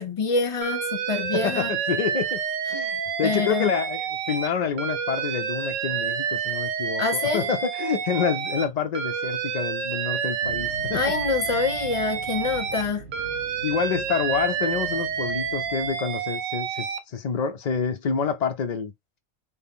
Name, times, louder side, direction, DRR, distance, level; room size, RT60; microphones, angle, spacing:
voice 1, 0.0-1.7 3.2-3.7 7.0-7.5 10.9-13.1, left 4 dB, 35° left, 0.6 m, -26 dB
Alarm, 0.6-4.5 4.8-8.7 8.9-12.8 13.1-17.0, right 7 dB, 80° right, 1.0 m, -29 dB
voice 2, 1.3-2.4 2.7-11.0 13.6-18.9, left 6 dB, 90° left, 0.3 m, -27 dB
sound 1, 10.4-15.9, right 4 dB, 50° right, 0.7 m, -42 dB
4.2 x 2.0 x 3.6 m
omnidirectional pair, 1.3 m